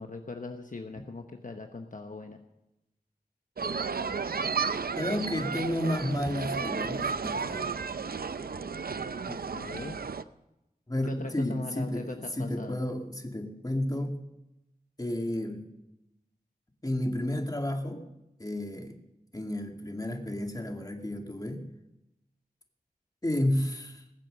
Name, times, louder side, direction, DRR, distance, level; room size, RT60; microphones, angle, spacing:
voice 1, 0.0-2.4 9.2-10.0 11.1-12.8, left 3 dB, 55° left, 4 dB, 1.0 m, -40 dB
sound 1, 3.6-10.2, right 5 dB, 70° right, 0.6 m, -33 dB
voice 2, 4.9-7.7 10.9-14.2 15.0-15.7 16.8-18.0 18.4-19.0 19.3-21.7 23.2-24.0, left 1 dB, 25° left, 3 dB, 2.2 m, -31 dB
20.0 x 7.7 x 6.7 m, 0.90 s
wide cardioid pair, 55°, 16 cm